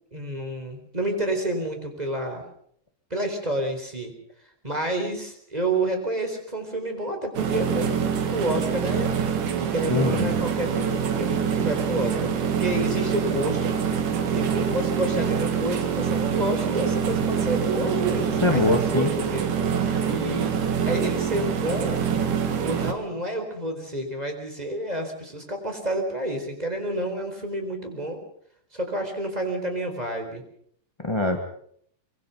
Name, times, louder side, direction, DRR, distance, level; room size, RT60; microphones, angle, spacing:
voice 1, 0.1-2.4 3.1-4.1 4.6-7.9 8.3-12.3 12.6-14.0 14.3-19.5 19.8-20.6 20.8-22.0 22.6-28.2 28.7-30.4, right 1 dB, 10° right, 5 dB, 4.2 m, -29 dB
sound 1, 7.3-22.9, right 7 dB, 80° right, 3.5 m, -25 dB
voice 2, 9.9-10.4 18.4-19.1 31.0-31.5, left 2 dB, 20° left, 4 dB, 0.8 m, -23 dB
24.0 x 23.5 x 5.6 m, 0.64 s
omnidirectional pair, 3.6 m